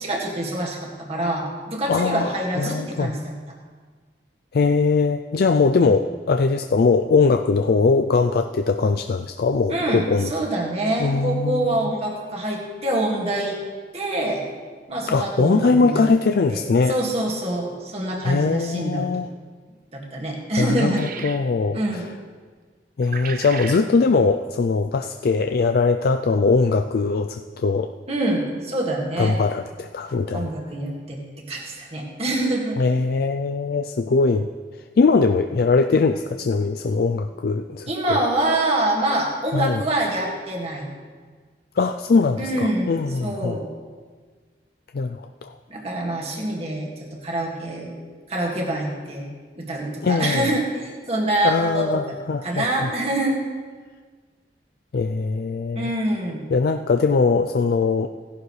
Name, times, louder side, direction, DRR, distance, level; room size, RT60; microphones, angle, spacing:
voice 1, 0.0-3.3 9.7-13.6 13.9-14.4 14.9-16.0 16.5-16.6 16.9-19.1 19.9-21.1 21.7-22.1 28.1-29.4 30.3-31.2 31.5-32.8 37.9-40.9 42.4-42.9 43.2-43.7 45.7-47.9 48.3-49.3 49.6-52.2 52.4-53.4 55.8-56.4, right 1 dB, 35° right, -2 dB, 2.0 m, -25 dB
voice 2, 1.9-3.2 4.5-10.3 11.0-11.9 15.1-16.9 18.2-19.3 20.6-22.0 23.0-27.9 29.2-30.5 32.8-34.5 35.0-38.2 39.5-39.8 41.8-43.6 44.9-45.5 50.0-50.5 51.4-52.6 54.9-55.9 56.5-58.1, left 4 dB, 60° left, 6 dB, 0.4 m, -21 dB
sound 1, 20.7-21.5 23.0-23.9, right 7 dB, 55° right, 0.7 m, -35 dB
16.5 x 11.5 x 3.2 m, 1.5 s
head